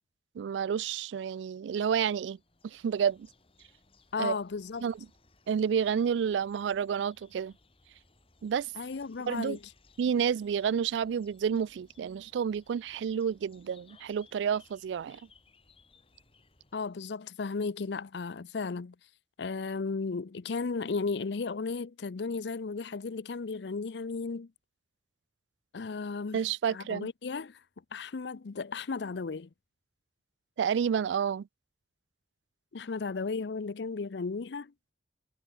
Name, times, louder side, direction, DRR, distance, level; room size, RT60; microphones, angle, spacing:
voice 1, 0.4-2.4 2.6-3.3 4.2-4.3 4.8-4.9 5.5-7.5 8.4-8.7 9.3-9.6 10.0-15.2 26.3-27.1 30.6-31.5, right 7 dB, 85° right, 0.3 m, -30 dB
sound 1, 2.2-17.1, left 4 dB, 30° left, 3.3 m, -63 dB
voice 2, 4.1-4.9 8.8-9.7 16.7-19.0 19.4-24.5 25.7-26.4 26.7-27.6 27.9-29.5 32.7-34.7, left 4 dB, 75° left, 0.6 m, -35 dB
head